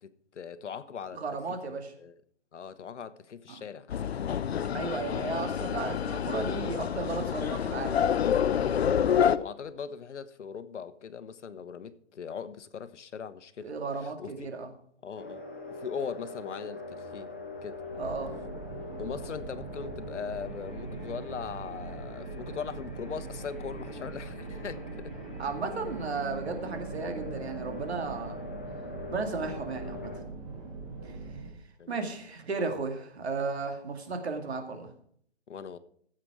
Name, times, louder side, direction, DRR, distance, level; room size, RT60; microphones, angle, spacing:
voice 1, 0.0-1.2 2.0-2.1 2.5-4.2 9.3-13.7 14.0-14.5 15.0-15.4 15.8-17.3 17.6-17.8 19.0-25.1 26.5-26.6 31.8-32.0 35.5-35.8, left 6 dB, 75° left, 1.1 m, -40 dB
voice 2, 1.1-1.9 3.5-3.6 4.7-8.1 9.0-9.2 13.6-14.7 18.0-18.3 25.4-28.4 29.1-30.1 31.0-31.2 31.9-34.9, right 4 dB, 65° right, 2.3 m, -34 dB
sound 1, 3.9-9.4, left 8 dB, 60° left, 0.7 m, -28 dB
sound 2, 15.2-30.2, left 2 dB, 10° left, 0.5 m, -43 dB
sound 3, 17.9-31.5, right 3 dB, 25° right, 2.1 m, -42 dB
15.0 x 7.7 x 4.9 m
hypercardioid pair, 170°, 35 cm